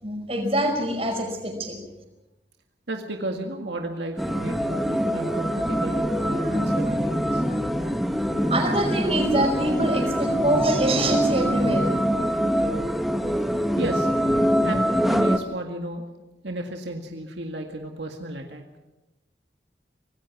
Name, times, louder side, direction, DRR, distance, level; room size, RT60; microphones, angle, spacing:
voice 1, 0.0-1.8 8.5-11.9, right 1 dB, 35° right, 3 dB, 5.2 m, -24 dB
voice 2, 2.9-7.4 13.8-14.1 14.6-16.0 16.4-18.6, right 1 dB, 80° right, 3 dB, 2.0 m, -33 dB
sound 1, 4.2-15.4, equal, ahead, 0.9 m, -24 dB
26.0 x 19.0 x 6.0 m, 1.0 s
head